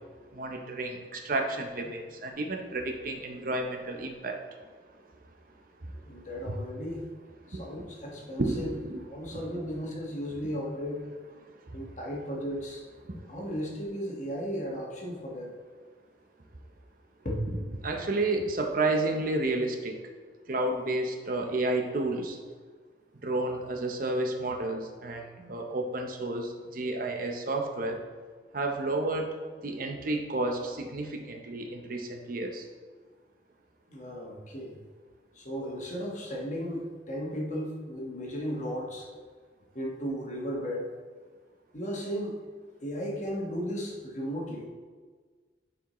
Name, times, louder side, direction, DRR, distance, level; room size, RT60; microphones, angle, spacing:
voice 1, 0.3-4.4 6.5-6.6 7.5-7.6 8.4-9.0 9.3-9.4 13.0-13.2 17.8-19.9 20.5-22.4 23.2-28.0 28.5-29.4 29.6-32.6, right 2 dB, 50° right, 3 dB, 0.8 m, -31 dB
voice 2, 6.0-7.0 7.5-8.7 9.0-11.0 11.7-12.8 13.3-15.5 17.2-17.4 33.9-34.7 35.3-39.1 39.7-40.9 41.7-42.3 42.8-44.7, equal, 45° left, -2 dB, 1.4 m, -35 dB
10.5 x 4.8 x 3.1 m, 1.5 s
head